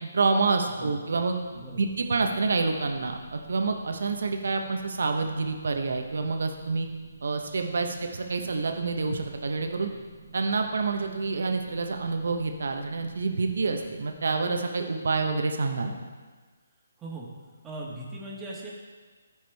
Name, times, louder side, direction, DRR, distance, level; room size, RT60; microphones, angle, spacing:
voice 1, 0.0-1.3 1.8-6.9 7.2-9.9 10.3-16.0, right 4 dB, 70° right, 5 dB, 1.0 m, -27 dB
sound 1, 1.4-14.6, right 4 dB, 35° right, 1.5 m, -50 dB
voice 2, 1.5-1.9 8.4-8.5 17.0-17.3 17.6-18.7, right 2 dB, 15° right, -4 dB, 1.7 m, -39 dB
14.5 x 4.9 x 3.5 m, 1.4 s
figure-of-eight pair, 145°, 0 cm